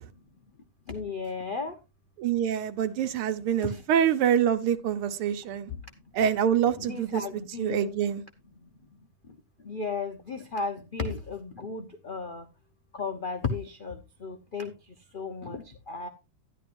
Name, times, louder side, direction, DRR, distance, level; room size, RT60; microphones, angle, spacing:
voice 1, 0.9-1.7 3.6-3.9 5.7-5.8 6.7-7.9 9.6-12.5 12.9-14.7 15.1-16.1, left 4 dB, 55° left, 0.5 m, -34 dB
voice 2, 2.2-5.7 6.1-7.2 7.6-8.2, right 9 dB, 90° right, 1.7 m, -25 dB
12.5 x 11.0 x 2.6 m
omnidirectional pair, 2.3 m